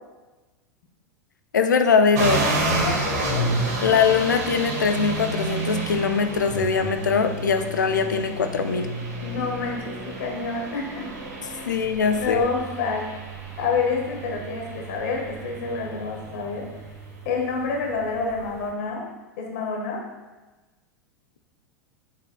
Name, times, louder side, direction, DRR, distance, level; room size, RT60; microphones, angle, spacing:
voice 1, 1.5-2.5 3.8-8.9 11.7-12.5, left 5 dB, 80° left, 8 dB, 0.6 m, -21 dB
sound 1, 2.1-18.7, right 2 dB, 65° right, 1.5 m, -30 dB
voice 2, 2.7-3.6 9.2-11.1 11.5-11.7 12.1-13.1 13.6-16.6 17.2-19.1 19.4-20.0, left 4 dB, 65° left, 0 dB, 1.6 m, -28 dB
7.4 x 7.3 x 2.3 m, 1.2 s
hypercardioid pair, 90°, 10 cm